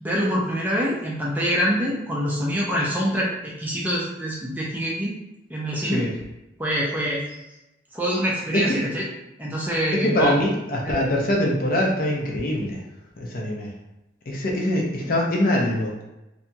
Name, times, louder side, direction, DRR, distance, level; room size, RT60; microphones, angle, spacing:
voice 1, 0.0-5.1 5.5-6.1 6.6-7.2 7.9-9.1 9.4-10.3 10.8-11.0, equal, 10° right, -4 dB, 0.4 m, -25 dB
voice 2, 10.0-12.8 13.2-13.7 14.3-16.0, left 1 dB, 50° left, -2 dB, 0.5 m, -23 dB
2.8 x 2.6 x 2.2 m, 0.92 s
head